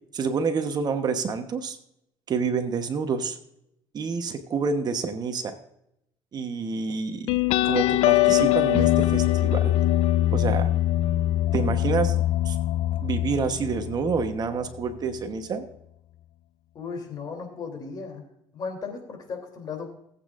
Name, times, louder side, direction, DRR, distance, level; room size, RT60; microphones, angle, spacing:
voice 1, 0.1-1.8 2.3-3.4 3.9-5.6 6.3-7.4 7.6-9.7 10.3-10.7 11.5-12.2 12.4-12.6 13.0-15.6, right 5 dB, 45° right, 7 dB, 1.1 m, -28 dB
sound 1, 7.3-14.4, left 14 dB, 80° left, 0.4 m, -22 dB
voice 2, 16.7-18.2 18.5-19.9, left 5 dB, 45° left, 3 dB, 3.1 m, -36 dB
19.0 x 8.4 x 2.5 m, 0.79 s
cardioid pair, 110°, 10 cm